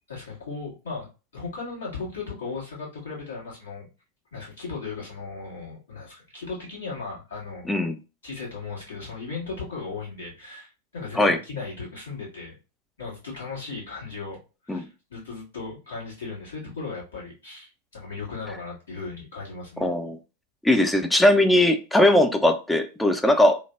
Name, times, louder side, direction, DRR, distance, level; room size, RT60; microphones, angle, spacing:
voice 1, 0.1-1.1 1.3-3.9 4.3-7.8 8.2-12.6 13.0-14.4 14.6-19.9, left 4 dB, 65° left, -4 dB, 1.5 m, -36 dB
voice 2, 7.7-8.0 11.2-11.4 14.7-14.8 19.8-20.2 20.6-23.6, left 1 dB, 5° left, 6 dB, 0.4 m, -19 dB
3.1 x 2.1 x 2.3 m, 0.31 s
figure-of-eight pair, 90°, 0 cm